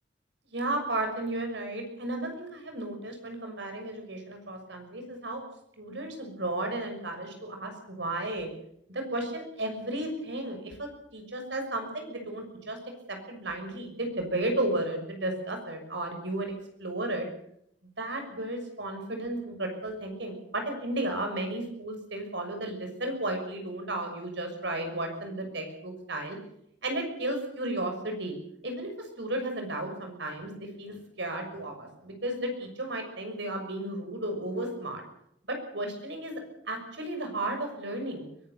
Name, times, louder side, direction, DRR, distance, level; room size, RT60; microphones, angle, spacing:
voice 1, 0.5-5.4 5.8-8.5 8.9-12.8 13.1-17.3 18.0-26.4 26.8-28.4 28.6-35.0 35.5-36.4 36.7-38.3, right 1 dB, 65° right, 5 dB, 6.3 m, -34 dB
23.0 x 19.0 x 6.8 m, 0.74 s
head